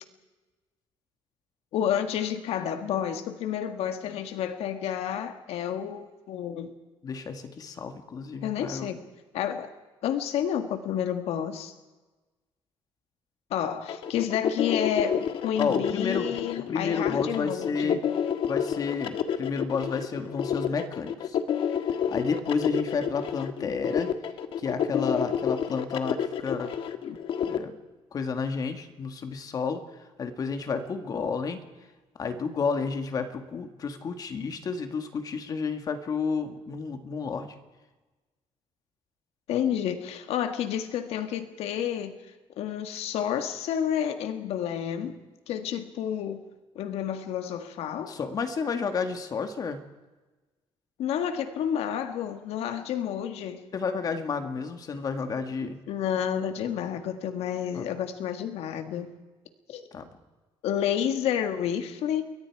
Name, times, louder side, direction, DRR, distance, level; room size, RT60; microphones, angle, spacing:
voice 1, 1.7-6.7 8.4-9.1 9.3-9.7 10.0-11.7 13.5-18.0 39.5-42.1 42.6-45.2 45.5-46.4 46.8-48.2 51.0-53.6 55.9-59.1 59.7-59.9 60.6-62.2, left 9 dB, 80° left, 8 dB, 1.8 m, -30 dB
voice 2, 7.0-8.9 15.6-16.4 16.7-18.1 18.5-21.4 21.9-24.1 24.6-26.7 27.5-27.8 28.1-29.8 30.2-31.6 32.2-37.5 48.1-49.8 53.7-55.8 57.7-57.9 59.9-60.1, left 5 dB, 35° left, 7 dB, 1.8 m, -31 dB
sound 1, 13.9-27.6, left 8 dB, 60° left, 1.4 m, -29 dB
29.0 x 22.0 x 4.7 m, 1.2 s
cardioid pair, 165°, 10 cm